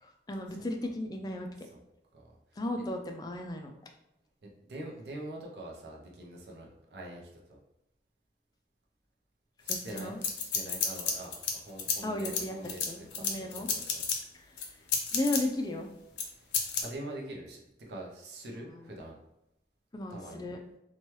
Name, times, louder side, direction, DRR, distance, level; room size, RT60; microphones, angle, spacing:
voice 1, 0.0-1.7 2.6-3.7 9.7-10.2 12.0-13.7 14.3-14.5 15.1-15.9 18.7-18.9 19.9-20.6, left 1 dB, 20° left, 3 dB, 0.3 m, -35 dB
voice 2, 4.4-7.6 9.6-14.1 16.4-16.5 16.8-19.2 20.1-20.5, right 1 dB, 60° right, -2 dB, 0.5 m, -44 dB
sound 1, 9.7-11.5 11.8-14.2 14.6-15.4 16.2-16.3 16.5-16.8, left 6 dB, 75° left, 0.5 m, -31 dB
2.9 x 2.2 x 3.0 m, 0.87 s
head